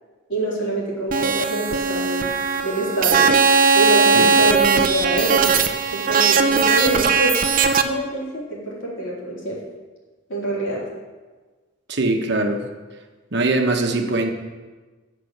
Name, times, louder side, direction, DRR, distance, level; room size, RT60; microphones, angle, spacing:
voice 1, 0.3-2.3 2.6-3.3 3.7-5.6 5.9-7.4 7.8-9.6 10.3-10.8, right 1 dB, 75° left, -5 dB, 3.8 m, -25 dB
sound 1, 1.1-7.8, right 5 dB, 45° right, 0.6 m, -18 dB
voice 2, 11.9-12.6 13.3-14.3, right 2 dB, 60° right, 4 dB, 1.1 m, -21 dB
9.0 x 6.7 x 6.6 m, 1.3 s
head